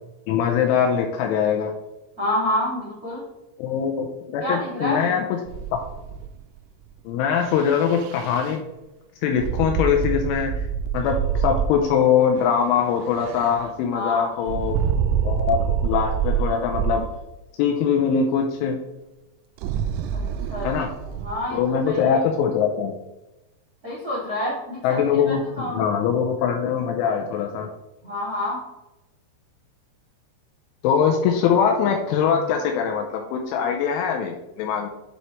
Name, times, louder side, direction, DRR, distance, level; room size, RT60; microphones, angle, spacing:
voice 1, 0.3-1.7 3.6-5.2 7.1-8.6 9.2-10.7 10.9-14.8 15.2-17.1 17.6-18.8 20.6-20.9 21.5-22.9 24.8-27.7 30.8-34.9, left 7 dB, 85° left, 3 dB, 2.9 m, -22 dB
voice 2, 2.2-3.2 4.4-5.0 13.9-14.3 20.1-20.7 21.1-22.2 23.8-25.0 25.3-25.8 28.0-28.6, left 1 dB, 40° right, -8 dB, 1.3 m, -28 dB
sound 1, 5.5-6.6 7.4-8.6 9.4-11.9 12.4-13.7 14.5-17.0 19.6-22.0, right 7 dB, 85° right, 3.2 m, -26 dB
10.0 x 4.3 x 3.1 m, 0.98 s
omnidirectional pair, 6.0 m